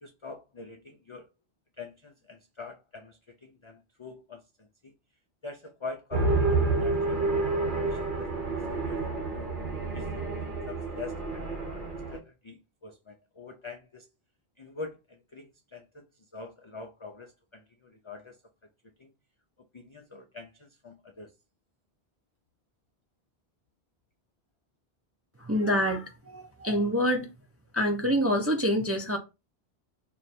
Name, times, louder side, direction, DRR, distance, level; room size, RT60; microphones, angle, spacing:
voice 1, 0.0-1.2 1.8-4.9 5.4-7.2 7.7-9.6 9.9-14.1 14.6-18.4 19.0-19.1 19.7-21.3, left 4 dB, 55° left, 0.3 m, -45 dB
sound 1, 6.1-12.2, right 3 dB, 55° right, 0.9 m, -29 dB
voice 2, 25.4-27.3 27.7-29.2, equal, 25° right, 0.3 m, -26 dB
3.1 x 2.3 x 4.1 m
omnidirectional pair, 1.1 m